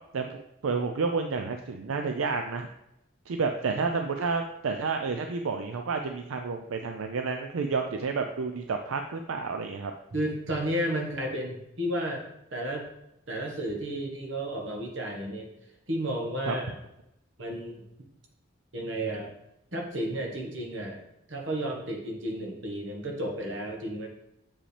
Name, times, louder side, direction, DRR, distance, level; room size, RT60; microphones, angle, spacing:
voice 1, 0.1-2.7 3.3-9.9 16.5-16.6, right 4 dB, 90° right, 5 dB, 0.5 m, -30 dB
voice 2, 10.1-12.2 12.5-12.9 13.3-15.5 15.9-16.7 17.4-17.8 18.7-19.3 19.7-21.0 21.3-24.1, right 1 dB, 65° right, 1 dB, 1.4 m, -32 dB
7.2 x 5.0 x 3.3 m, 0.85 s
head